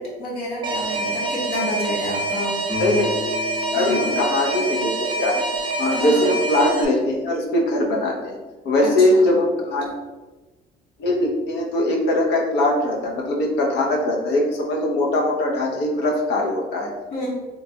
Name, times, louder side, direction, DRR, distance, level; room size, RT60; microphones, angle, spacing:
voice 1, 0.2-2.6 3.7-4.2 5.9-6.3 8.8-9.3 17.1-17.3, left 2 dB, 60° left, -6 dB, 0.9 m, -29 dB
Alarm, 0.6-6.8, right 3 dB, 30° right, 0.4 m, -26 dB
sound 1, 2.6-6.3, left 5 dB, 10° left, 0.6 m, -36 dB
voice 2, 2.7-3.1 3.7-4.9 5.2-5.4 5.8-8.4 8.6-9.9 11.0-16.9, left 1 dB, 80° left, -1 dB, 0.6 m, -21 dB
3.2 x 2.2 x 2.7 m, 1.2 s
cardioid pair, 110°, 17 cm